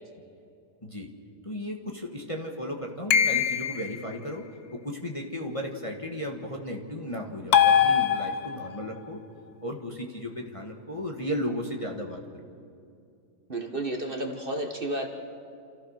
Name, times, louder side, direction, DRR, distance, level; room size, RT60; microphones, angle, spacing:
voice 1, 1.4-9.2 9.6-12.2, equal, 20° left, 1 dB, 1.5 m, -35 dB
sound 1, 3.1-4.0 7.5-8.8, left 8 dB, 70° left, 1.4 m, -22 dB
voice 2, 13.5-15.1, right 1 dB, 35° right, 4 dB, 1.5 m, -31 dB
28.5 x 14.5 x 6.5 m, 2.5 s
omnidirectional pair, 1.7 m